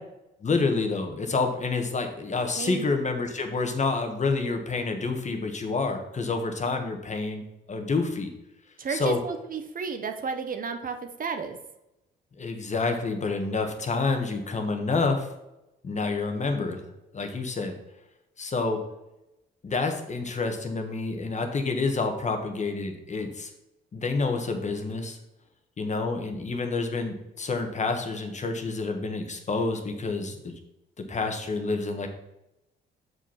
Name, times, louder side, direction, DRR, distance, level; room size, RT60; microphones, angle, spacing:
voice 1, 0.4-7.4 7.7-8.3 8.9-9.2 12.4-15.3 15.8-16.8 17.1-17.7 18.4-18.8 19.6-23.5 23.9-25.2 25.8-30.5 31.0-32.1, left 3 dB, 35° left, 5 dB, 1.3 m, -28 dB
voice 2, 8.8-11.6, right 5 dB, 45° right, 7 dB, 0.9 m, -32 dB
6.4 x 5.3 x 5.7 m, 0.90 s
cardioid pair, 90°, 20 cm